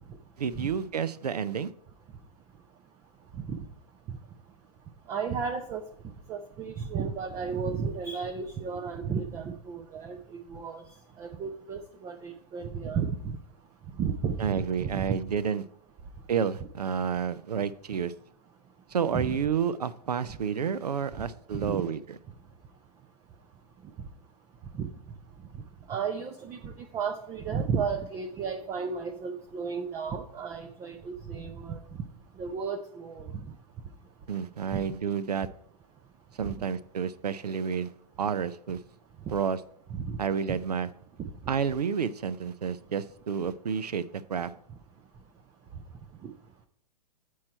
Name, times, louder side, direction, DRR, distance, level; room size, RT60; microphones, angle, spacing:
voice 1, 0.4-1.7 14.4-15.6 16.3-18.1 18.9-22.0 34.3-35.5 36.4-37.9 38.2-38.8 39.3-39.6 40.2-40.9 41.5-44.5, right 7 dB, 70° right, 16 dB, 0.5 m, -30 dB
voice 2, 5.1-5.8 6.3-10.8 11.2-13.4 14.0-15.2 19.1-19.4 21.6-21.8 24.7-24.9 25.9-31.8 32.4-33.3 34.7-34.8 39.9-40.2 46.2-46.3, right 6 dB, 15° right, 5 dB, 0.4 m, -33 dB
8.4 x 4.7 x 4.3 m, 0.73 s
figure-of-eight pair, 115°, 21 cm